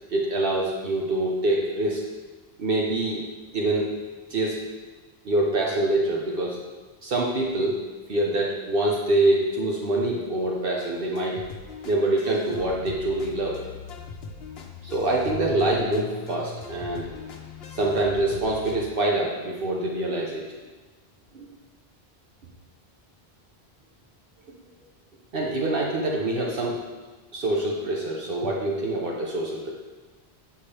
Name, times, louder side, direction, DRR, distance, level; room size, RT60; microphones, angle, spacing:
voice 1, 0.1-2.1 2.6-3.2 3.5-3.9 4.3-4.6 5.2-6.6 7.0-7.8 8.1-11.4 11.9-13.6 14.8-17.1 17.7-20.4 21.3-21.5 25.3-26.8 27.3-29.7, right 2 dB, 65° right, -2 dB, 1.0 m, -25 dB
sound 1, 10.8-18.9, left 5 dB, 75° left, 1.0 m, -39 dB
9.1 x 5.5 x 3.3 m, 1.3 s
omnidirectional pair, 1.0 m